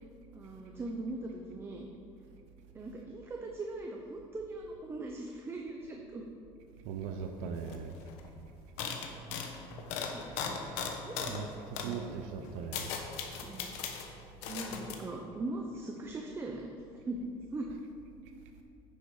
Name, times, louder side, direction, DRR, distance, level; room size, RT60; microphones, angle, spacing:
voice 1, 0.3-1.9 2.7-6.2 10.1-10.6 11.0-11.4 11.7-12.2 13.4-13.7 14.5-16.7 17.1-17.7, right 2 dB, 20° right, 1 dB, 0.7 m, -40 dB
voice 2, 6.8-7.9 11.3-12.9, right 6 dB, 85° right, 4 dB, 0.7 m, -39 dB
sound 1, 7.7-8.3 8.8-11.4 11.7-11.9 12.4-14.1 14.4-14.9, left 6 dB, 90° left, 1.1 m, -38 dB
9.7 x 6.8 x 4.8 m, 2.5 s
cardioid pair, 140°, 12 cm